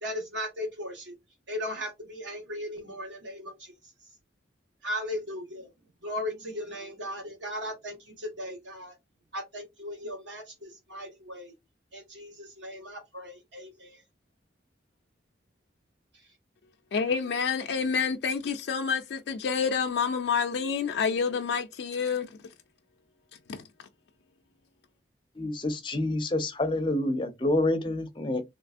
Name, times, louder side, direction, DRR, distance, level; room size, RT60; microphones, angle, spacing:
voice 1, 0.0-1.1 1.5-3.7 4.8-5.7 6.0-8.9 9.3-11.5 11.9-14.0, left 1 dB, 80° right, 1.4 m, -37 dB
voice 2, 16.9-22.3 23.5-23.6, left 6 dB, 70° left, 0.3 m, -28 dB
voice 3, 25.4-28.4, left 1 dB, 25° left, 0.6 m, -28 dB
3.2 x 2.9 x 2.5 m
head